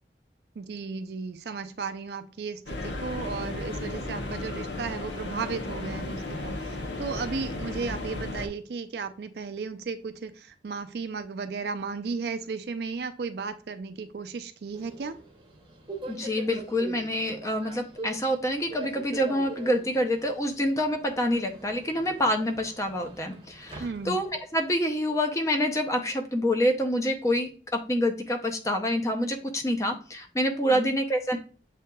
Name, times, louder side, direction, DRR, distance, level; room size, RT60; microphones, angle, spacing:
voice 1, 0.6-15.2 23.8-24.2 30.7-30.9, right 4 dB, 65° right, 9 dB, 0.4 m, -35 dB
sound 1, 2.7-8.5, left 2 dB, 80° left, 0.8 m, -34 dB
Subway metro underground, 14.7-24.5, right 2 dB, 25° right, 0.7 m, -43 dB
voice 2, 16.1-31.4, equal, 15° left, 4 dB, 0.5 m, -27 dB
7.5 x 2.8 x 2.2 m, 0.40 s
head